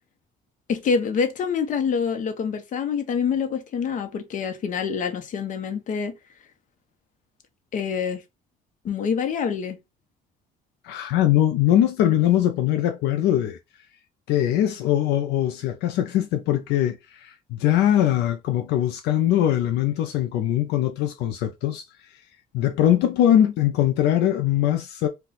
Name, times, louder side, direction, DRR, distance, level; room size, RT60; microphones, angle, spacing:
voice 1, 0.7-6.2 7.7-8.2 8.8-9.8, left 6 dB, 50° left, 0.7 m, -26 dB
voice 2, 10.8-13.6 14.3-21.8 22.5-25.1, left 11 dB, 80° left, 0.4 m, -21 dB
2.4 x 2.2 x 3.9 m
cardioid pair, 110°, 17 cm